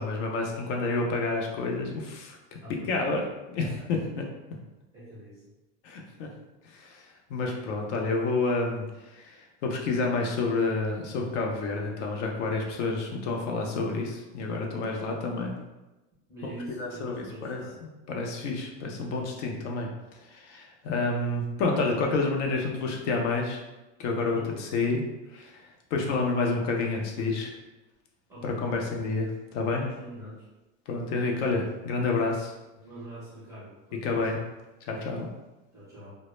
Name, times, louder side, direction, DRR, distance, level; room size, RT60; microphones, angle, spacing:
voice 1, 0.0-2.6 2.9-3.2 3.5-4.2 5.8-6.3 6.6-15.6 16.4-16.5 16.8-19.9 20.2-23.6 24.0-25.0 25.3-25.6 25.9-27.5 28.4-29.8 30.9-32.5 34.0-34.4 34.9-35.3, left 3 dB, 70° left, 1 dB, 0.6 m, -29 dB
voice 2, 2.6-3.1 3.6-3.9 4.9-5.5 16.3-17.8 24.3-24.7 28.3-28.7 29.8-30.5 32.8-34.4 35.7-36.1, right 1 dB, 10° right, -9 dB, 0.4 m, -44 dB
2.0 x 2.0 x 3.0 m, 1.1 s
supercardioid pair, 170°, 38 cm